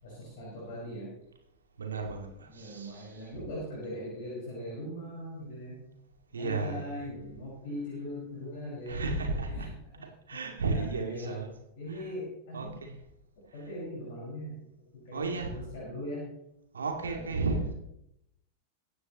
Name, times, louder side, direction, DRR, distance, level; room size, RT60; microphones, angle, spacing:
voice 1, 0.0-1.1 2.5-5.8 6.3-9.7 9.9-10.4 10.6-11.4 11.8-12.8 13.5-14.6 14.9-16.3 17.0-17.3, left 1 dB, 50° left, -5 dB, 5.5 m, -40 dB
voice 2, 1.8-3.4 6.3-7.0 8.7-9.7 10.3-11.5 11.9-12.1 12.5-12.9 13.6-13.7 15.1-15.7 16.7-17.7, right 3 dB, 70° right, 2 dB, 2.3 m, -34 dB
23.0 x 9.7 x 3.1 m, 0.81 s
figure-of-eight pair, 90°, 0 cm